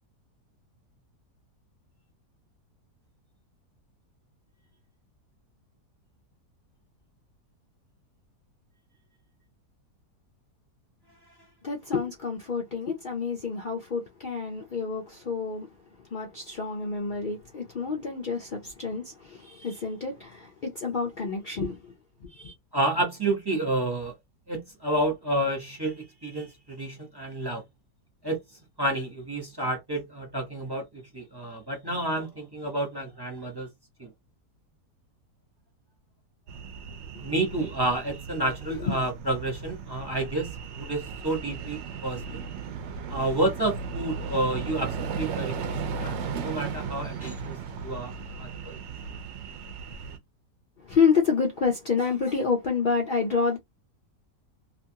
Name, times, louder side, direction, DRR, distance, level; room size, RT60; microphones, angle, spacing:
voice 1, 11.6-15.7 16.1-21.9 22.2-22.5 37.2-37.3 50.9-53.6, left 5 dB, 85° left, 0.4 m, -28 dB
voice 2, 22.7-24.1 24.5-27.6 28.2-28.4 28.8-33.7 34.0-34.1 37.2-42.4 43.1-47.6 47.8-48.1 48.4-48.8, right 1 dB, 20° right, 0.8 m, -30 dB
sound 1, 36.5-50.2, right 5 dB, 70° right, 0.7 m, -36 dB
2.7 x 2.5 x 2.7 m
omnidirectional pair, 1.7 m